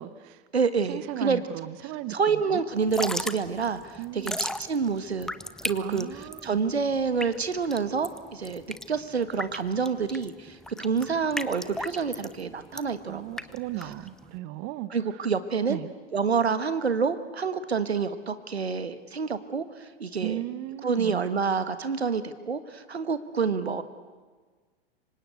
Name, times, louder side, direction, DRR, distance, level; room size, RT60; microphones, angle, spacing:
voice 1, 0.0-0.4 0.9-2.6 4.0-4.4 5.8-6.6 13.1-15.2 15.7-15.9 20.2-21.2, right 15 dB, 40° right, 15 dB, 1.3 m, -36 dB
voice 2, 0.5-1.4 2.1-5.3 5.6-8.6 8.9-13.4 14.9-15.8 16.1-20.4 20.8-23.8, right 5 dB, 80° right, 12 dB, 1.5 m, -28 dB
Drip / Trickle dribble, 2.8-14.4, left 1 dB, ahead, 0.8 m, -36 dB
27.0 x 25.0 x 8.4 m, 1.4 s
figure-of-eight pair, 90°, 32 cm